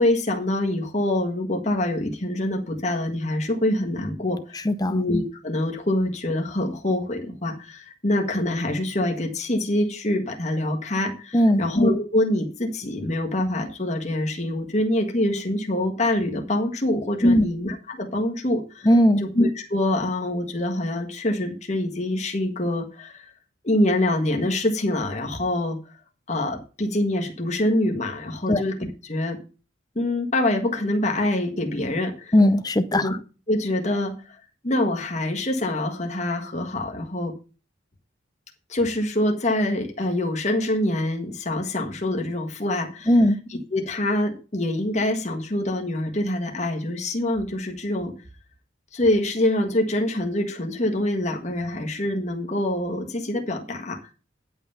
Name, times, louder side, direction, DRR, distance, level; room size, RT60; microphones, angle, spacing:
voice 1, 0.0-4.6 4.9-18.9 19.2-23.3 23.6-25.8 26.3-28.8 29.0-29.4 30.0-32.3 32.9-33.1 33.5-34.4 34.6-37.3 38.7-43.1 43.7-48.1 48.9-54.0, left 1 dB, 35° left, 1.6 m, -25 dB
voice 2, 4.6-5.0 11.3-11.6 17.2-17.5 18.8-19.2 28.5-28.6 32.3-33.2 43.1-43.4, equal, 20° left, 0.6 m, -18 dB
10.5 x 5.6 x 5.6 m
head